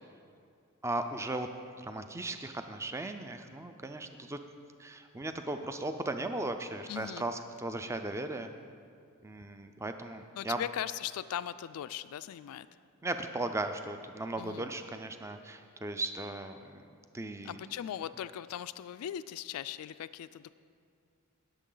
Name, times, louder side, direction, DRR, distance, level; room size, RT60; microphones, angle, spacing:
voice 1, 0.8-1.5 1.8-4.4 4.8-8.5 9.2-10.6 13.0-16.9 17.1-17.6, right 2 dB, 15° right, 7 dB, 0.4 m, -37 dB
voice 2, 6.9-7.2 10.3-12.7 14.4-14.7 17.4-20.5, left 10 dB, 75° left, 13 dB, 0.3 m, -39 dB
18.5 x 7.2 x 3.9 m, 2.3 s
head